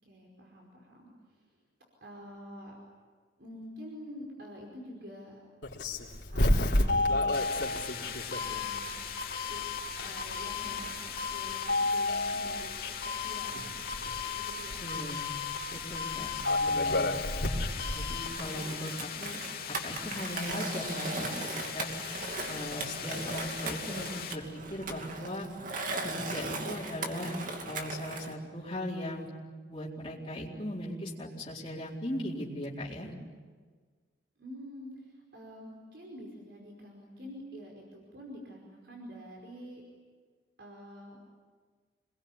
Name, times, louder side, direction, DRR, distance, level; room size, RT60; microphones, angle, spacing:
voice 1, 0.0-1.5 2.0-2.8 3.4-5.4 6.3-7.4 8.4-9.0 9.5-9.6 10.0-13.8 14.2-14.8 34.4-39.8 40.6-41.2, equal, 70° right, -1 dB, 5.1 m, -47 dB
Doorbell, 5.6-18.4, left 2 dB, 80° left, 3.5 m, -31 dB
sound 1, 7.3-24.3, left 8 dB, 55° left, 2.6 m, -40 dB
voice 2, 14.8-15.3 15.7-16.3 16.6-17.1 17.9-19.4 19.7-21.9 22.5-25.5 26.0-27.4 27.6-29.3 29.7-33.1, equal, 30° left, -6 dB, 4.3 m, -38 dB
Skateboard, 18.3-28.3, right 3 dB, 50° right, 2.6 m, -38 dB
27.5 x 21.5 x 9.8 m, 1.5 s
head